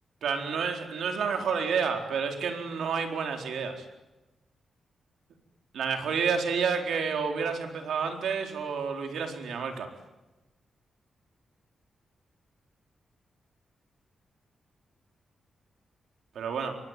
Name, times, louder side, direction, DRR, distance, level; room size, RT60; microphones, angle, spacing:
voice 1, 0.2-3.8 5.7-9.9 16.3-16.8, right 6 dB, 85° right, 4 dB, 4.3 m, -30 dB
27.0 x 23.5 x 9.3 m, 1.1 s
wide cardioid pair, 155°, 0 cm